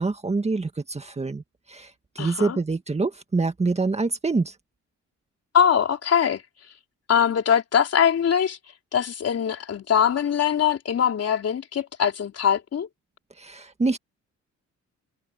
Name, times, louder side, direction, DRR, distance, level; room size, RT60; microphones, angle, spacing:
voice 1, 0.0-1.4 1.7-1.9 2.2-4.5 13.4-14.0, right 3 dB, 20° right, 1.7 m, -25 dB
voice 2, 2.2-2.6 5.5-6.4 7.1-8.6 8.9-12.9, left 8 dB, 55° left, 3.8 m, -22 dB
cardioid pair, 90°, 30 cm